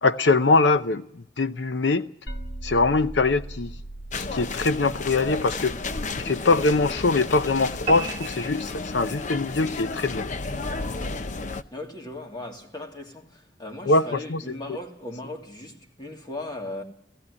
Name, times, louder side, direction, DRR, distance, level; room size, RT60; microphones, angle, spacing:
voice 1, 0.0-2.1 2.6-3.7 4.2-5.7 6.2-10.3 13.9-14.5, left 3 dB, 90° left, 0.7 m, -23 dB
sound 1, 2.3-7.8, right 1 dB, 65° left, 2.1 m, -40 dB
sound 2, 4.1-11.6, left 3 dB, 45° left, 0.8 m, -32 dB
sound 3, 7.9-9.4, right 5 dB, 35° right, 2.1 m, -35 dB
voice 2, 11.7-16.8, left 2 dB, 25° left, 2.7 m, -37 dB
17.5 x 15.5 x 9.7 m
head